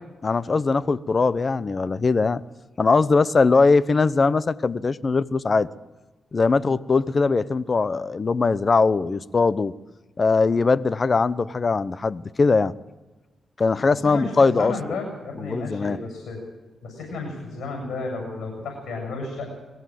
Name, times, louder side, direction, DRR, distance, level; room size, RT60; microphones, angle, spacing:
voice 1, 0.2-2.4 2.8-5.7 6.3-9.7 10.2-12.7 13.6-14.7 15.4-16.0, left 4 dB, 40° left, 17 dB, 0.8 m, -21 dB
voice 2, 14.0-16.4 16.8-19.5, left 3 dB, 80° left, 2 dB, 7.5 m, -32 dB
21.5 x 15.5 x 7.7 m, 1.2 s
cardioid pair, 85°, 0 cm